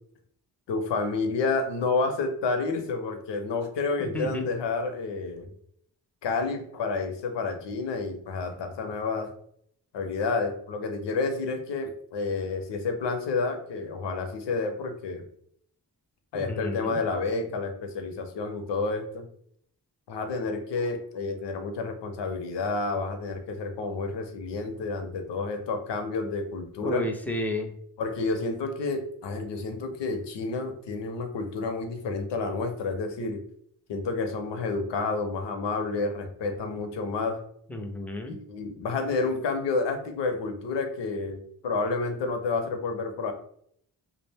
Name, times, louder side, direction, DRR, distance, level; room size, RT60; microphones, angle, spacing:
voice 1, 0.7-5.5 6.2-9.3 9.9-15.3 16.3-19.3 20.1-27.1 28.0-33.4 33.9-37.4 38.3-43.3, left 3 dB, 80° left, 6 dB, 0.6 m, -30 dB
voice 2, 4.0-4.5 16.3-17.0 26.8-27.7 37.7-38.4, left 1 dB, 5° left, 3 dB, 0.3 m, -32 dB
2.4 x 2.1 x 3.3 m, 0.67 s
cardioid pair, 85°, 43 cm